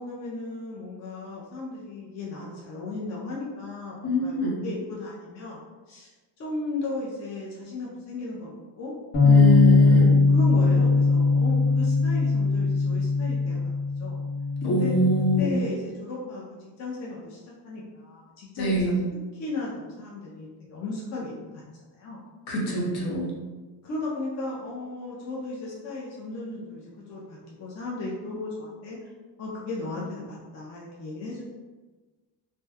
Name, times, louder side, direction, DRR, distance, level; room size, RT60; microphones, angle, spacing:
voice 1, 0.0-6.1 6.4-8.9 9.6-14.2 14.6-14.9 15.4-16.4 16.8-19.0 19.3-22.2 23.8-29.1 29.4-31.4, left 2 dB, 40° left, -5 dB, 0.4 m, -36 dB
voice 2, 4.0-4.6 9.2-10.2 14.6-15.6 18.6-19.0 22.5-23.4, left 1 dB, 60° left, -3 dB, 0.9 m, -24 dB
sound 1, 9.1-15.4, left 3 dB, 90° left, 1.3 m, -20 dB
2.7 x 2.1 x 3.3 m, 1.3 s
cardioid pair, 175°, 46 cm